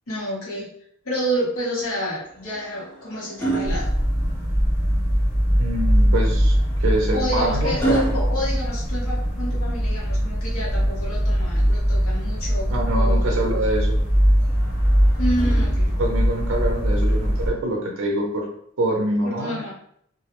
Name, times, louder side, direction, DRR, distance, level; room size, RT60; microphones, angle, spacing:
voice 1, 0.1-0.7 1.0-3.9 7.1-13.3 15.2-15.9 19.2-19.7, equal, 80° left, -4 dB, 0.9 m, -29 dB
sound 1, 2.3-4.7 6.3-9.5 11.3-12.4 14.4-16.2 17.5-17.7, right 3 dB, 10° left, 0.4 m, -32 dB
sound 2, 3.6-17.5, equal, 40° left, 0.9 m, -21 dB
voice 2, 5.6-7.7 12.7-14.0 16.0-18.5 18.8-19.6, right 1 dB, 65° right, -1 dB, 0.5 m, -25 dB
2.2 x 2.0 x 2.9 m, 0.66 s
head